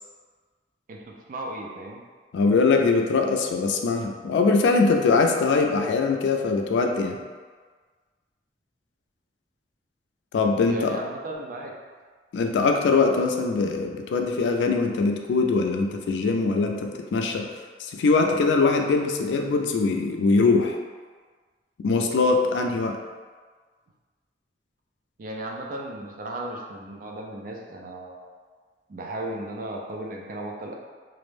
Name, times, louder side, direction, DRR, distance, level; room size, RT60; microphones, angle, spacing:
voice 1, 0.9-2.0 10.7-11.8 25.2-28.3 28.9-30.7, right 1 dB, 50° right, 0 dB, 0.3 m, -35 dB
voice 2, 2.3-7.2 10.3-11.0 12.3-17.4 17.8-20.8 21.8-23.0, left 4 dB, 90° left, 3 dB, 0.3 m, -22 dB
2.4 x 2.0 x 3.1 m, 1.5 s
head